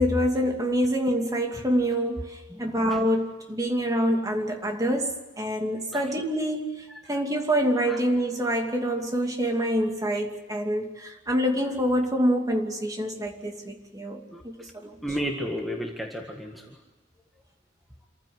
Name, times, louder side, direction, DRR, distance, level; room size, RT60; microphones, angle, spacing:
voice 1, 0.0-15.0, equal, 20° right, 2.7 m, -26 dB
voice 2, 2.5-3.0 5.9-6.1 7.9-8.0 14.3-14.4 15.0-16.8, equal, ahead, 1.7 m, -33 dB
27.0 x 15.0 x 9.7 m
head